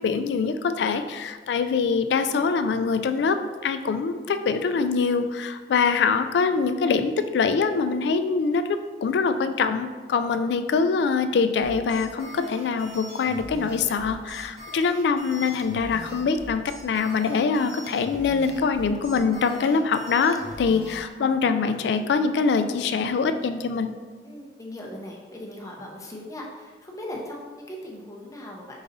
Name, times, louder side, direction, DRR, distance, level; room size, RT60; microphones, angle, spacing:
voice 1, 0.0-3.4 3.6-8.6 9.0-23.9, left 5 dB, 70° left, 10 dB, 0.3 m, -24 dB
sound 1, 11.6-21.0, left 1 dB, 35° right, 1.0 m, -42 dB
voice 2, 20.7-21.3 24.2-28.8, left 1 dB, 20° left, -1 dB, 0.6 m, -39 dB
5.3 x 3.9 x 2.6 m, 1.5 s
head